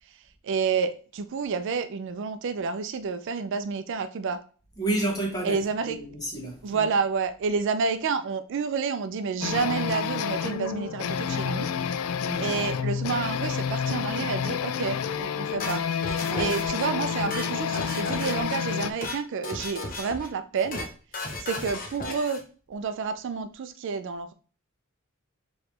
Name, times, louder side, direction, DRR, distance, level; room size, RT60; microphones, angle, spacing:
voice 1, 0.4-4.4 5.4-6.0 6.6-11.7 12.4-15.9 16.1-20.9 21.4-22.4 22.7-24.3, right 5 dB, 60° right, 0.4 m, -29 dB
voice 2, 4.8-5.6 5.8-6.9 12.1-12.5 16.2-16.5, right 2 dB, 20° left, 1.5 m, -30 dB
sound 1, 9.4-18.9, left 7 dB, 75° left, 0.3 m, -29 dB
sound 2, 15.6-16.9 17.2-18.6 18.9-19.2 19.4-20.3 20.6-20.9 21.1-22.4, left 2 dB, 40° left, 0.9 m, -35 dB
4.8 x 3.1 x 3.2 m
head